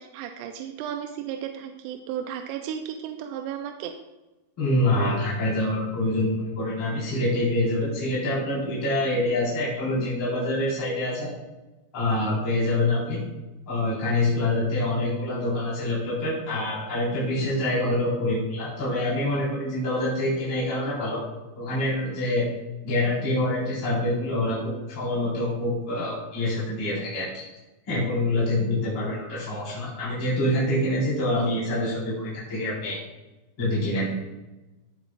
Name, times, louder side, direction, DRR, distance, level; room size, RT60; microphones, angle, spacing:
voice 1, 0.0-3.9, right 9 dB, 90° right, 5 dB, 2.8 m, -34 dB
voice 2, 4.6-11.3 11.9-13.2 13.7-21.2 21.6-22.5 22.8-27.4 27.9-33.0 33.6-34.1, left 1 dB, 30° left, -9 dB, 4.6 m, -26 dB
16.5 x 8.3 x 2.4 m, 1.0 s
omnidirectional pair, 4.9 m